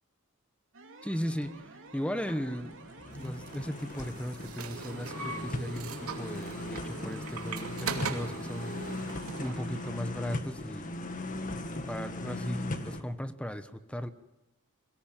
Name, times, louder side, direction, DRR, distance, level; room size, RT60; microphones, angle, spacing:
sound 1, 0.7-10.0, right 3 dB, 60° right, 2.7 m, -51 dB
voice 1, 1.0-2.8 3.1-8.8 9.0-10.9 11.9-14.1, equal, 5° left, 11 dB, 1.1 m, -37 dB
sound 2, 1.4-1.6 2.0-13.0, left 1 dB, 35° left, 1.9 m, -38 dB
sound 3, 3.2-9.6, right 4 dB, 80° right, 2.7 m, -40 dB
23.5 x 18.5 x 8.9 m, 0.92 s
head